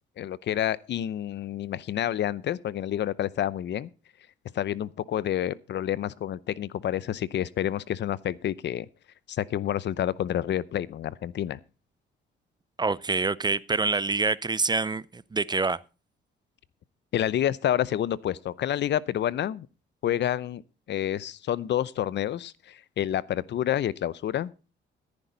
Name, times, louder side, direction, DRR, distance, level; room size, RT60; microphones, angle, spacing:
voice 1, 0.2-3.9 4.5-8.9 9.3-11.6 17.1-19.7 20.0-20.6 20.9-24.5, left 11 dB, 60° left, 0.7 m, -28 dB
voice 2, 12.8-15.8, right 3 dB, 20° right, 0.6 m, -26 dB
14.5 x 9.9 x 3.9 m
cardioid pair, 90°, 20 cm